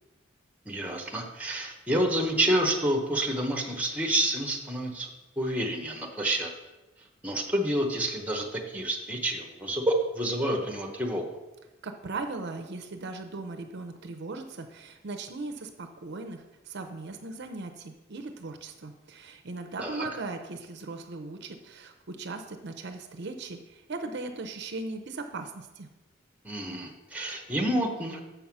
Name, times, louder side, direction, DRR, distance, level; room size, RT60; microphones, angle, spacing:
voice 1, 0.7-5.1 5.4-6.5 7.2-11.3 19.8-20.1 26.4-28.2, right 1 dB, 5° right, 2 dB, 1.0 m, -28 dB
voice 2, 11.8-25.9, right 3 dB, 55° right, 7 dB, 0.6 m, -38 dB
7.0 x 5.5 x 5.9 m, 1.1 s
head